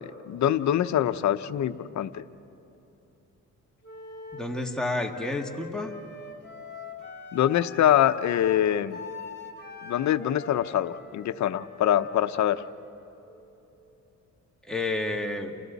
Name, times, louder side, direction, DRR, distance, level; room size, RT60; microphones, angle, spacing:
voice 1, 0.0-2.2 7.3-9.0 9.8-12.6, left 11 dB, 65° left, 11 dB, 0.9 m, -24 dB
Wind instrument woodwind instrument, 3.8-13.6, left 4 dB, 35° left, 4.6 m, -44 dB
voice 2, 4.3-6.0 14.6-15.5, left 2 dB, ahead, 0 dB, 2.2 m, -30 dB
30.0 x 29.0 x 4.2 m, 3.0 s
cardioid pair, 90°, 30 cm